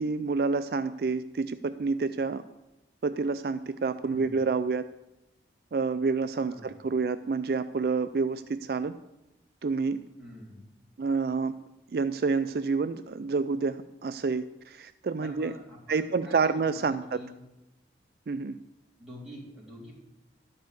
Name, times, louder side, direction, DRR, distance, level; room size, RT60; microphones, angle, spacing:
voice 1, 0.0-2.4 3.0-4.9 5.7-9.0 9.6-10.0 11.0-11.5 11.9-15.5 15.9-17.2 18.3-18.6, right 4 dB, 55° right, 12 dB, 0.4 m, -28 dB
voice 2, 4.0-4.4 6.4-6.8 10.2-10.7 15.2-17.3 19.0-19.9, equal, ahead, -6 dB, 3.6 m, -46 dB
12.5 x 5.4 x 7.7 m, 0.93 s
head